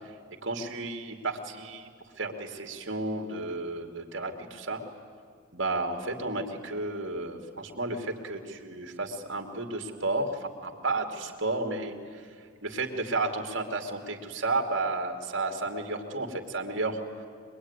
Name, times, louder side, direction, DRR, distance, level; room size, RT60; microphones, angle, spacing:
voice 1, 0.4-1.9 2.2-4.8 5.5-12.2 12.6-17.0, right 2 dB, 60° right, 4 dB, 2.7 m, -32 dB
24.5 x 21.5 x 9.8 m, 2.2 s
head